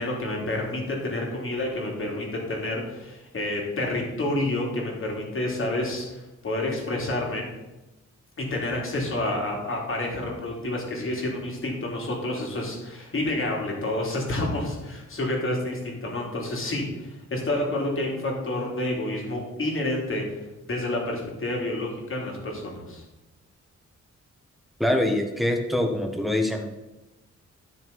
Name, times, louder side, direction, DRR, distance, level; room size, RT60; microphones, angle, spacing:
voice 1, 0.0-7.4 8.4-23.0, left 1 dB, 45° left, -1 dB, 3.3 m, -29 dB
voice 2, 24.8-26.7, left 1 dB, ahead, 3 dB, 1.5 m, -24 dB
13.0 x 6.6 x 5.4 m, 1.0 s
wide cardioid pair, 145°, 29 cm